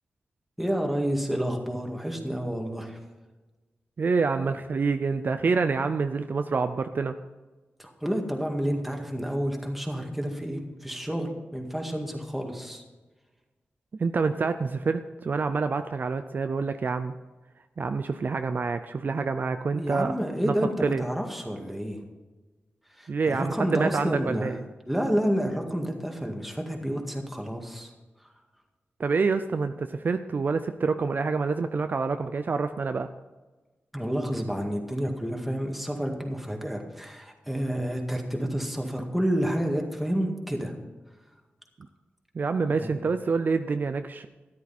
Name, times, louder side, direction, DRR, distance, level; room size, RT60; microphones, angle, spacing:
voice 1, 0.6-3.0 7.8-12.8 19.7-22.0 22.9-24.6 24.9-27.9 33.9-40.7 42.7-43.0, equal, 5° right, 1 dB, 2.0 m, -29 dB
voice 2, 4.0-7.1 14.0-17.1 17.8-20.1 20.4-20.5 20.8-21.0 23.1-24.5 29.0-33.1 42.3-44.3, right 4 dB, 50° right, 9 dB, 0.5 m, -27 dB
13.5 x 11.0 x 4.3 m, 1.2 s
wide cardioid pair, 115°, 4 cm